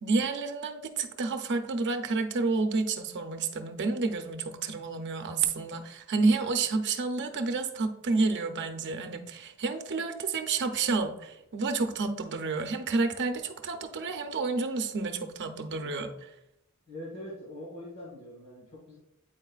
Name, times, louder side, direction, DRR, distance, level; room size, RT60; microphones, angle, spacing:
voice 1, 0.0-16.3, right 3 dB, 55° right, 6 dB, 0.6 m, -30 dB
voice 2, 16.9-19.0, left 1 dB, 50° left, -4 dB, 1.5 m, -43 dB
8.6 x 4.6 x 2.4 m, 0.85 s
head